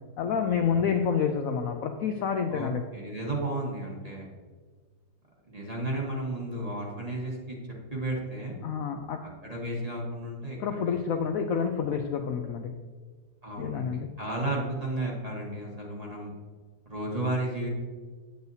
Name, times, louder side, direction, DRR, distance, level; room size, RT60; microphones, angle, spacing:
voice 1, 0.2-2.8 8.6-9.2 10.6-12.7 13.6-14.1, left 6 dB, 85° left, 5 dB, 0.7 m, -28 dB
voice 2, 2.5-4.3 5.5-7.6 7.9-8.6 9.4-11.0 13.4-16.3 16.9-17.7, right 1 dB, 25° right, -3 dB, 1.1 m, -33 dB
8.1 x 8.0 x 2.7 m, 1.5 s
omnidirectional pair, 2.0 m